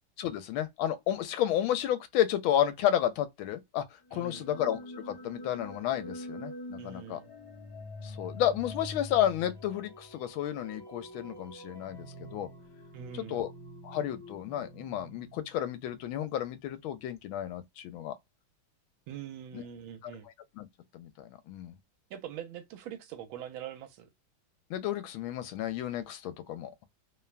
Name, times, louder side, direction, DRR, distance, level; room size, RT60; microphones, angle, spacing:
voice 1, 0.2-3.8 4.1-4.8 5.1-7.2 8.0-12.5 13.1-13.5 13.8-18.2 19.5-19.6 20.0-20.1 20.6-20.7 20.9-21.8 24.7-26.9, left 11 dB, 85° left, 1.4 m, -31 dB
sound 1, 4.1-16.0, left 1 dB, 25° left, 0.6 m, -46 dB
voice 2, 4.1-4.5 6.8-7.3 12.9-13.5 19.1-20.3 22.1-24.1, right 9 dB, 80° right, 1.5 m, -43 dB
3.5 x 2.2 x 2.4 m
omnidirectional pair, 2.2 m